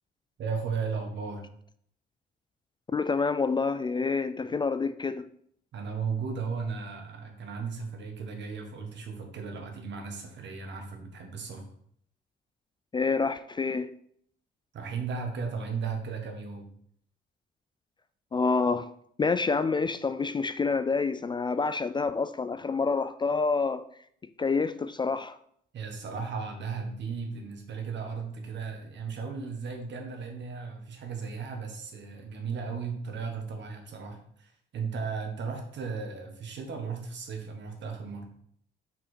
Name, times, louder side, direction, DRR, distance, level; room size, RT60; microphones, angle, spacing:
voice 1, 0.4-1.4 5.7-11.6 14.7-16.7 25.7-38.3, right 5 dB, 65° right, 1.5 m, -35 dB
voice 2, 2.9-5.3 12.9-13.9 18.3-18.9 19.2-23.8 24.4-25.4, left 4 dB, 25° left, 0.3 m, -27 dB
5.8 x 5.0 x 4.2 m
cardioid pair, 90°, 20 cm